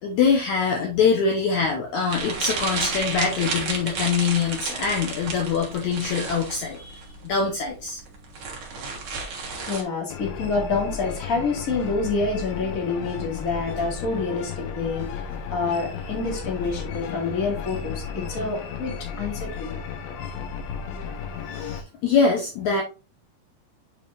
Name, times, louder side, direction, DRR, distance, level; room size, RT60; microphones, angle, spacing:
voice 1, 0.0-8.0 21.5-22.8, left 5 dB, 65° left, 1 dB, 2.2 m, -24 dB
sound 1, 2.1-9.8, right 4 dB, 45° right, 1.9 m, -32 dB
voice 2, 9.7-15.3 15.5-19.8, left 4 dB, 30° left, -1 dB, 2.3 m, -27 dB
sound 2, 10.1-21.8, left 6 dB, 85° left, 2.7 m, -34 dB
8.0 x 5.1 x 2.7 m, 0.31 s
omnidirectional pair, 4.0 m